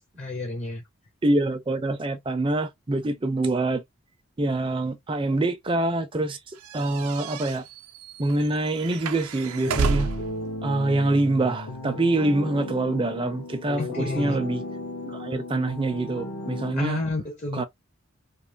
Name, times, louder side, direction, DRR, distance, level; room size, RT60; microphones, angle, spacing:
voice 1, 0.2-0.8 13.8-14.4 16.7-17.6, left 2 dB, 30° left, 0.6 m, -30 dB
voice 2, 1.2-3.8 4.4-6.4 6.7-7.6 8.2-10.1 10.6-14.6 15.0-17.0 17.5-17.6, right 2 dB, 25° right, 0.4 m, -25 dB
sound 1, 6.6-10.4, right 4 dB, 80° right, 0.5 m, -30 dB
sound 2, 9.4-16.7, left 2 dB, 70° left, 0.7 m, -35 dB
2.4 x 2.4 x 3.0 m
head